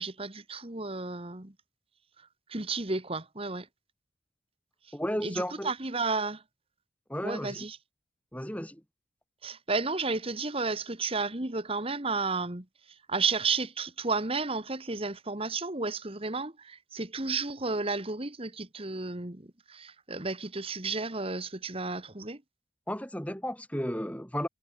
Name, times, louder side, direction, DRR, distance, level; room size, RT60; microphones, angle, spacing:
voice 1, 0.0-1.5 2.5-3.7 5.2-6.4 7.2-7.8 9.4-12.7 13.1-22.4, right 4 dB, 30° right, 1.9 m, -32 dB
voice 2, 4.9-5.7 7.1-7.7 8.3-8.8 22.9-24.5, equal, 10° left, 6.2 m, -33 dB
head